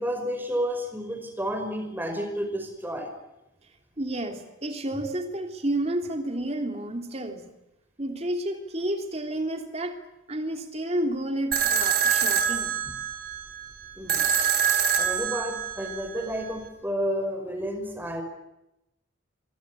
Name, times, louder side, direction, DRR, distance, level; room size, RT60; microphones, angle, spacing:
voice 1, 0.0-3.1 12.9-13.0 14.0-14.3 14.9-18.2, equal, 10° right, 5 dB, 5.2 m, -31 dB
voice 2, 4.0-7.5 8.0-10.0 10.3-12.8, right 1 dB, 30° right, 5 dB, 3.0 m, -30 dB
sound 1, 11.5-16.5, right 7 dB, 50° right, 3.8 m, -26 dB
27.5 x 24.5 x 8.5 m, 0.90 s
head